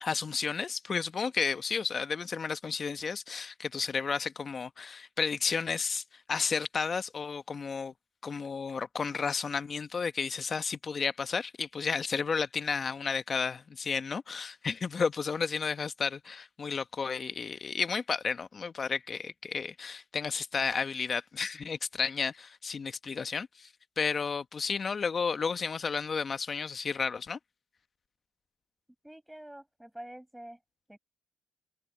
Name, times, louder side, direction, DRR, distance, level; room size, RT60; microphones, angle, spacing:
voice 1, 0.0-6.0 6.3-7.9 8.2-23.7 24.0-27.4, left 5 dB, 40° left, 1.0 m, -32 dB
voice 2, 29.0-30.6 30.9-31.0, right 1 dB, 5° right, 5.8 m, -46 dB
cardioid pair, 90°, 0 cm